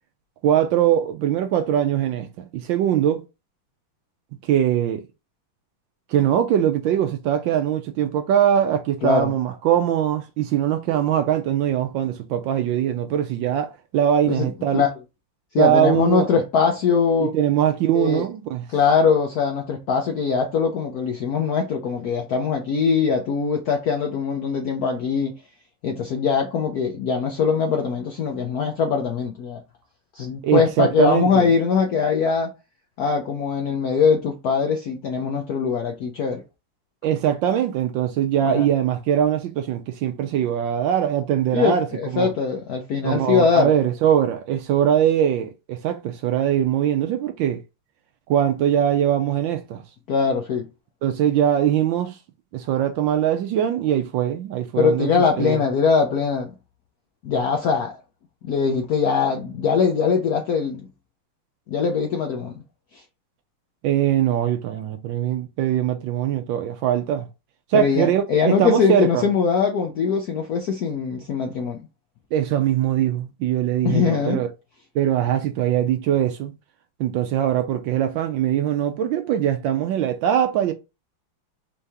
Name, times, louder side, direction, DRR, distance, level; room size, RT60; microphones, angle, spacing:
voice 1, 0.4-3.2 4.4-5.1 6.1-14.8 15.6-16.3 17.2-18.6 30.4-31.5 37.0-41.9 42.1-42.3 43.0-47.6 48.3-49.8 51.0-52.2 52.5-55.1 55.4-55.6 63.8-67.3 67.7-69.2 72.3-74.5 74.9-76.5 77.0-80.7, right 10 dB, 75° right, 1.1 m, -21 dB
voice 2, 9.0-9.3 14.3-14.9 15.5-17.3 17.9-18.3 18.7-25.4 25.8-29.6 30.1-32.5 33.0-36.4 38.4-38.7 41.5-43.7 50.1-50.7 54.8-56.5 57.2-58.0 58.4-60.9 61.7-62.5 62.9-63.0 67.7-71.8 73.8-74.5, left 6 dB, 75° left, 0.8 m, -22 dB
4.6 x 2.7 x 3.4 m
omnidirectional pair, 2.4 m